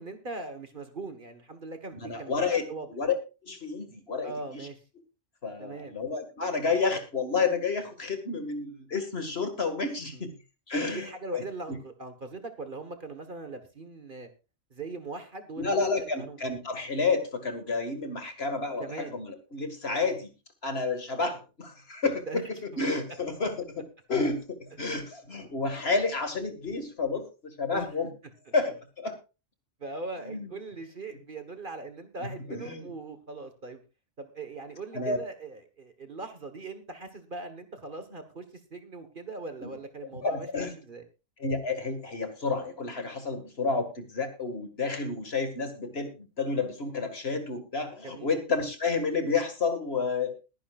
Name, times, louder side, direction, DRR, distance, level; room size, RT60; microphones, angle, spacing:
voice 1, 0.0-2.9 4.2-4.8 5.6-5.9 10.1-10.2 10.8-14.3 14.7-16.4 18.8-19.2 22.0-22.4 22.7-22.8 27.7-27.9 28.5-28.6 29.8-33.8 34.2-41.0 48.0-48.3, right 3 dB, 40° right, 8 dB, 1.6 m, -40 dB
voice 2, 1.9-3.1 3.4-4.7 5.4-10.3 10.7-11.4 11.7-11.8 15.6-20.3 20.6-28.1 28.5-29.2 30.3-30.5 32.2-32.9 34.9-35.2 39.6-39.7 40.2-40.7 41.4-50.4, left 4 dB, 50° left, 7 dB, 2.2 m, -30 dB
21.0 x 10.5 x 2.5 m, 0.29 s
omnidirectional pair, 1.4 m